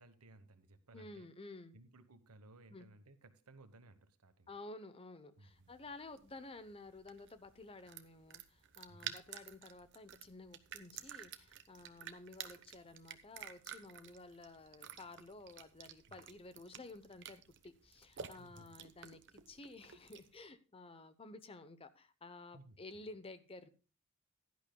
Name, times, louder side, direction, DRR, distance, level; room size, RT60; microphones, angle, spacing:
voice 1, 0.0-1.3 1.7-4.6 5.4-5.9 8.8-9.2 16.1-16.3 18.4-18.8 22.5-22.8, right 2 dB, 85° right, 10 dB, 1.2 m, -60 dB
voice 2, 0.9-1.8 2.7-2.9 4.5-23.7, left 2 dB, 25° left, 12 dB, 0.8 m, -53 dB
sound 1, 5.6-20.4, right 9 dB, 55° right, 0.9 m, -52 dB
16.0 x 11.5 x 2.3 m, 0.34 s
head